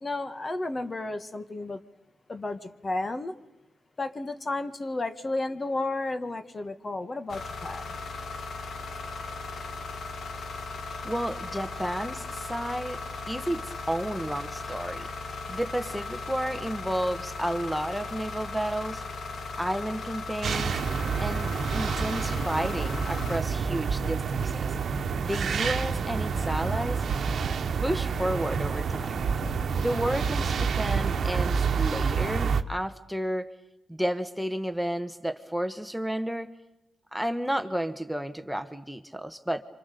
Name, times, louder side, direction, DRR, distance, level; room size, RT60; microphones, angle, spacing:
voice 1, 0.0-1.8 2.3-3.3 4.0-7.8, left 2 dB, 35° left, 1.7 m, -32 dB
sound 1, 7.3-23.4, left 3 dB, 65° left, 1.7 m, -37 dB
voice 2, 11.0-15.1 15.5-19.0 19.6-20.8 21.2-24.7 25.2-27.0 27.8-29.2 29.7-33.5 33.9-36.5 37.1-39.6, right 1 dB, ahead, 1.3 m, -32 dB
sound 2, 20.4-32.6, right 5 dB, 65° right, 1.2 m, -28 dB
28.0 x 26.0 x 7.0 m
supercardioid pair, 60°, 0 cm